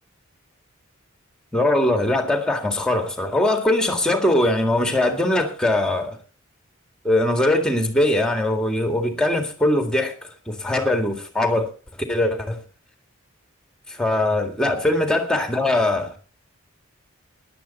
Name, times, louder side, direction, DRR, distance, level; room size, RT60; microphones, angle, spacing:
voice 1, 1.5-6.2 7.0-10.1 10.5-11.7 12.1-12.6 14.0-16.2, left 1 dB, 5° left, 1.9 m, -21 dB
16.5 x 11.0 x 4.2 m
head